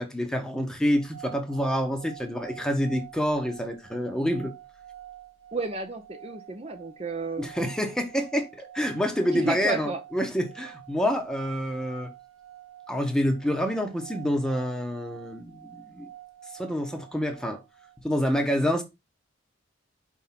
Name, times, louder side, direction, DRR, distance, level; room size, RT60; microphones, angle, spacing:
voice 1, 0.0-4.5 7.4-12.1 12.9-16.1 16.5-17.6 18.0-18.8, equal, 5° left, 1.0 m, -27 dB
sound 1, 0.8-18.0, right 12 dB, 85° right, 0.9 m, -48 dB
voice 2, 5.5-7.5 9.3-10.0, right 3 dB, 30° right, 0.7 m, -32 dB
5.3 x 3.6 x 5.8 m
head